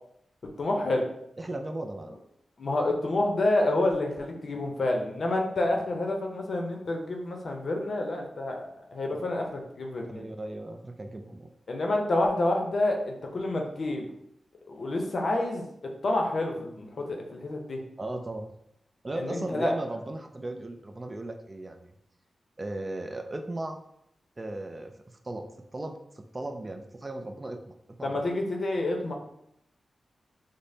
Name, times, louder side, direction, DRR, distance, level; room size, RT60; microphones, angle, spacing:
voice 1, 0.6-1.0 2.6-10.2 11.7-14.1 14.7-15.7 16.0-17.8 19.1-19.7 28.0-29.1, left 2 dB, 55° left, 2 dB, 0.6 m, -28 dB
voice 2, 1.4-2.1 10.1-11.5 18.0-18.5 19.0-21.9 22.6-23.8 24.4-25.5 25.7-28.2, right 2 dB, 25° right, 5 dB, 0.3 m, -37 dB
5.0 x 2.0 x 2.7 m, 0.77 s
wide cardioid pair, 110°, 0 cm